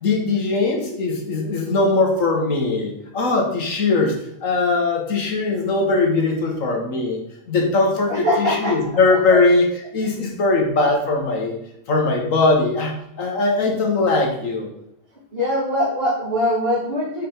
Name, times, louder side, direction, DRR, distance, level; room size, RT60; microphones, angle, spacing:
voice 1, 0.0-4.1 4.4-9.7 9.9-11.6 11.9-14.7, left 3 dB, 75° left, 1 dB, 1.7 m, -20 dB
voice 2, 8.1-8.8 9.1-9.4 15.3-17.2, equal, 45° right, -5 dB, 2.6 m, -22 dB
6.0 x 5.3 x 4.4 m, 0.75 s
omnidirectional pair, 1.4 m